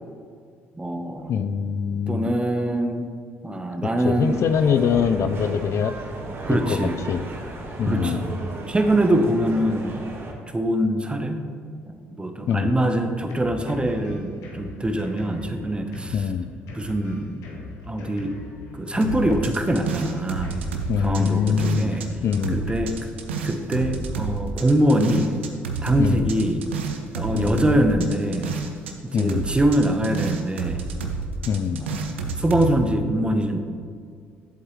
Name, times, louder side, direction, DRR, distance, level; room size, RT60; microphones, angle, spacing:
voice 1, 0.7-1.3 1.9-3.1 3.4-4.4 6.5-7.0 7.9-8.3 8.7-10.0 10.5-11.4 11.9-16.2 16.7-17.6 17.9-18.4 18.7-20.6 21.0-22.1 22.5-23.1 23.4-25.4 25.8-26.7 27.1-28.6 29.0-30.8 31.7-33.6, right 1 dB, 15° right, 6 dB, 1.0 m, -23 dB
voice 2, 1.3-2.3 4.0-6.0 6.5-7.2 7.8-8.2 12.5-12.7 16.1-16.5 20.9-21.9 22.2-22.6 26.0-26.3 27.3-27.6 29.1-29.5 31.5-31.8, left 7 dB, 50° left, 11 dB, 0.4 m, -23 dB
sound 1, 4.2-10.3, right 2 dB, 40° right, 1.6 m, -35 dB
Drum kit, 12.6-22.9, left 2 dB, 70° left, 1.5 m, -40 dB
sound 2, 19.0-22.1 22.3-28.9 29.2-32.7, right 4 dB, 90° right, 0.6 m, -30 dB
10.5 x 7.8 x 3.2 m, 2.3 s
hypercardioid pair, 55°, 6 cm